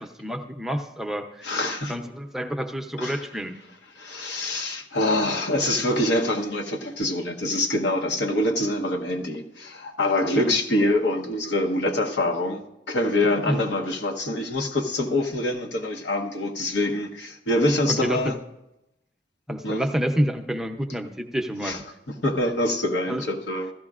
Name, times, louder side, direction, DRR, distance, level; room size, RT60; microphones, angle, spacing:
voice 1, 0.0-1.5 1.9-3.5 10.4-10.6 13.5-13.6 17.9-18.3 19.5-21.8 23.1-23.2, equal, ahead, 4 dB, 0.6 m, -28 dB
voice 2, 1.4-1.9 3.0-3.2 4.0-18.4 19.6-19.8 21.6-21.8 22.1-23.7, left 1 dB, 80° left, 4 dB, 1.1 m, -25 dB
15.5 x 13.0 x 2.4 m, 0.90 s
head